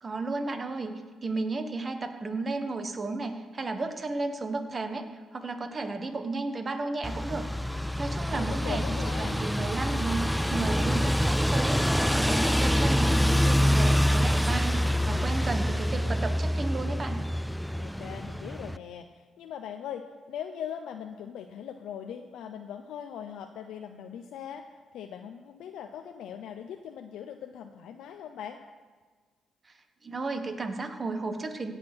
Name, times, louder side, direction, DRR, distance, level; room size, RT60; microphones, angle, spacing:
voice 1, 0.0-7.5 7.8-8.8 9.2-14.8 15.1-17.2 30.0-31.7, right 3 dB, 35° right, 7 dB, 1.3 m, -33 dB
sound 1, 7.0-18.8, equal, ahead, 0.3 m, -26 dB
voice 2, 8.3-9.4 17.7-24.7 24.9-28.6, left 8 dB, 80° left, 5 dB, 0.7 m, -40 dB
16.5 x 6.6 x 6.2 m, 1.5 s
cardioid pair, 90°, 0 cm